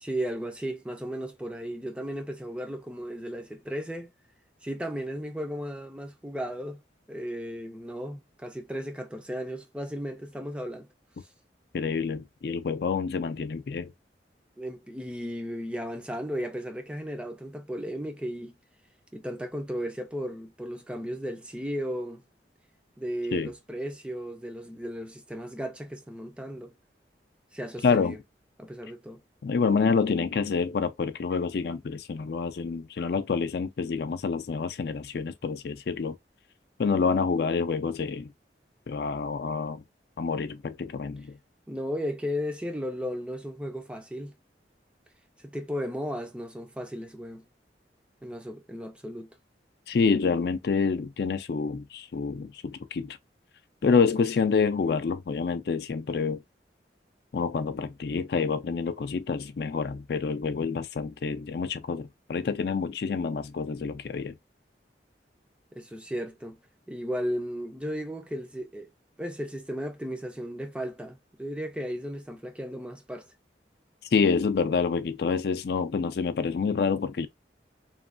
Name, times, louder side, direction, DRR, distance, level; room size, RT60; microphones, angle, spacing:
voice 1, 0.0-4.1 4.6-6.8 7.1-10.9 14.6-18.5 19.1-22.2 23.0-26.7 27.5-28.2 28.6-29.2 41.7-44.3 45.4-47.4 48.2-49.3 65.7-66.6 66.9-68.9 69.2-73.3, equal, 5° right, 0.4 m, -35 dB
voice 2, 11.7-13.9 23.3-23.5 27.8-28.2 29.4-36.2 36.8-38.3 38.9-39.8 40.2-41.4 49.9-53.2 53.8-56.4 57.3-64.3 74.1-77.3, left 5 dB, 60° left, 0.4 m, -27 dB
3.0 x 2.2 x 2.4 m
head